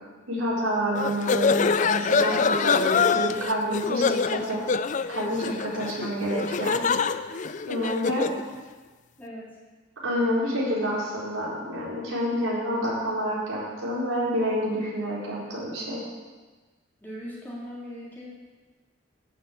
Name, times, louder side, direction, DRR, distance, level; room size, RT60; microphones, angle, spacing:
voice 1, 0.3-4.6 5.1-6.8 7.7-8.2 10.0-16.0, equal, 90° right, -6 dB, 4.4 m, -28 dB
sound 1, 0.9-8.4, left 5 dB, 40° left, 0.4 m, -25 dB
voice 2, 9.2-9.6 17.0-18.3, equal, 10° left, -8 dB, 3.7 m, -39 dB
11.5 x 7.2 x 8.6 m, 1.3 s
head